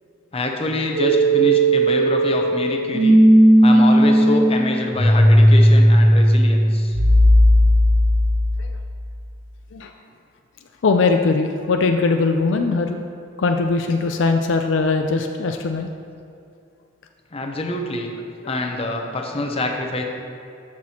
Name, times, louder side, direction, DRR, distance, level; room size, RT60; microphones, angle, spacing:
voice 1, 0.3-3.2 3.6-7.0 17.3-18.1 18.5-20.0, left 2 dB, 30° left, 2 dB, 0.8 m, -25 dB
sound 1, 0.9-8.8, equal, 40° right, 1.6 m, -15 dB
voice 2, 10.8-13.0 13.4-15.9, left 4 dB, 70° left, 5 dB, 0.4 m, -20 dB
13.5 x 6.0 x 2.9 m, 2.5 s
head